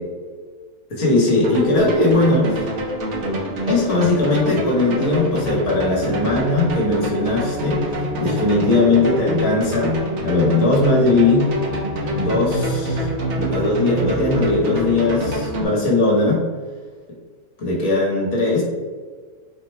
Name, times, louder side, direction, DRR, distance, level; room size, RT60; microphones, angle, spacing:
voice 1, 0.9-2.7 3.7-7.8 8.2-9.9 10.2-11.5 12.1-13.1 13.3-16.4 17.6-18.6, left 2 dB, 65° left, -3 dB, 1.6 m, -19 dB
sound 1, 1.4-15.6, equal, 55° right, 1.0 m, -26 dB
4.0 x 2.2 x 4.3 m, 1.5 s
omnidirectional pair, 1.6 m